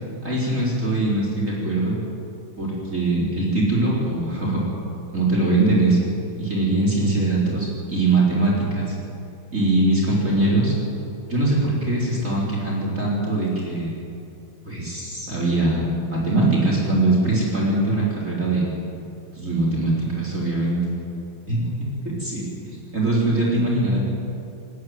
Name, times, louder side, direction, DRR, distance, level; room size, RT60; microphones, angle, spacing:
voice 1, 0.2-2.0 2.6-4.6 5.1-6.0 6.4-8.9 9.5-10.7 11.3-13.9 14.7-18.7 19.3-20.8 21.5-21.9 22.2-24.0, right 2 dB, 35° right, -5 dB, 4.4 m, -22 dB
19.0 x 18.0 x 9.4 m, 2.6 s
omnidirectional pair, 2.2 m